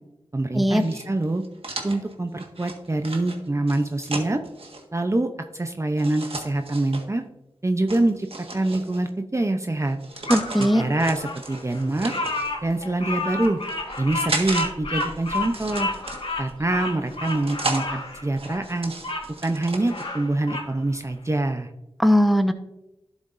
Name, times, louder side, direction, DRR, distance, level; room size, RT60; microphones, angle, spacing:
voice 1, 0.3-1.4 1.8-4.4 4.9-7.2 7.6-8.3 8.5-10.0 10.6-12.1 12.6-13.6 14.0-15.9 16.4-18.9 19.4-21.7, right 2 dB, 30° right, 6 dB, 0.7 m, -25 dB
sound 1, 0.7-4.8 6.0-7.0 7.9-9.1 9.8-10.7 11.0-12.5 13.2-14.7 15.0-16.5 17.1-17.9 18.3-20.0, right 2 dB, 70° right, 1.6 m, -34 dB
Bird vocalization bird call bird song, 10.3-19.3 19.7-20.7, left 2 dB, 70° left, 2.3 m, -31 dB
voice 2, 10.3-10.8 22.0-22.5, equal, ahead, 8 dB, 1.0 m, -19 dB
12.0 x 7.1 x 2.6 m, 0.89 s
cardioid pair, 45°, 10 cm